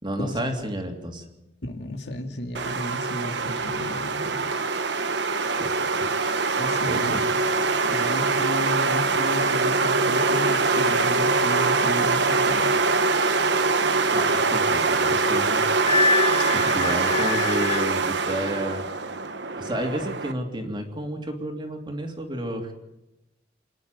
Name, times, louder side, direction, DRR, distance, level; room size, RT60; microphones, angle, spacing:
voice 1, 0.0-1.2 5.3-6.1 6.8-7.2 14.1-15.7 16.7-18.8 19.6-22.7, right 1 dB, 25° right, 3 dB, 2.9 m, -31 dB
voice 2, 1.6-4.5 6.6-7.4 7.8-12.9 16.4-16.9, left 1 dB, 65° left, 5 dB, 2.4 m, -33 dB
sound 1, 2.5-20.3, right 3 dB, 70° right, 1.3 m, -23 dB
Wind instrument woodwind instrument, 15.9-17.9, left 3 dB, 35° left, 1.7 m, -25 dB
27.5 x 10.5 x 9.3 m, 0.95 s
head